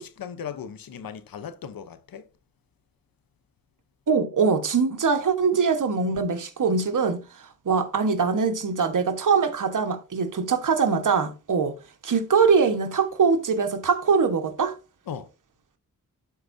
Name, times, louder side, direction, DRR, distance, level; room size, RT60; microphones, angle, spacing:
voice 1, 0.0-2.3 15.1-15.3, left 7 dB, 75° left, 0.9 m, -37 dB
voice 2, 4.1-11.7 12.0-14.7, right 5 dB, 60° right, 1.3 m, -23 dB
11.5 x 4.7 x 2.7 m
cardioid pair, 60°, 35 cm